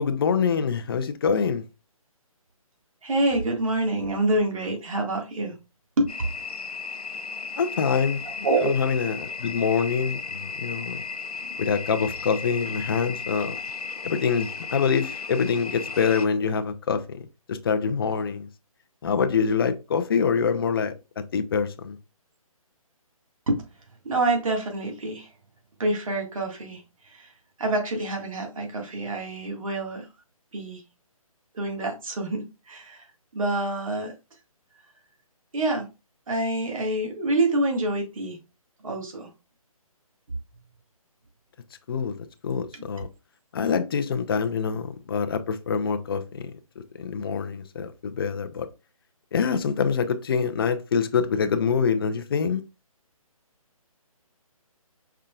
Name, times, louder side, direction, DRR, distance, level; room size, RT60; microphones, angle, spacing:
voice 1, 0.0-1.7 7.6-8.2 8.6-11.0 11.6-13.6 14.0-18.5 19.0-22.0 41.9-43.1 43.5-48.7 49.3-52.6, left 6 dB, 40° left, 0.6 m, -25 dB
voice 2, 3.0-5.6 6.0-6.1 8.4-8.7 23.5-23.6 24.0-25.3 25.8-26.8 27.1-27.3 27.6-30.1 30.5-30.8 31.5-33.0 33.3-34.1 35.5-35.9 36.3-38.4 38.8-39.3, right 2 dB, 65° right, 1.8 m, -26 dB
sound 1, 6.1-16.3, left 5 dB, 85° left, 0.6 m, -35 dB
5.6 x 3.6 x 2.4 m
figure-of-eight pair, 150°, 19 cm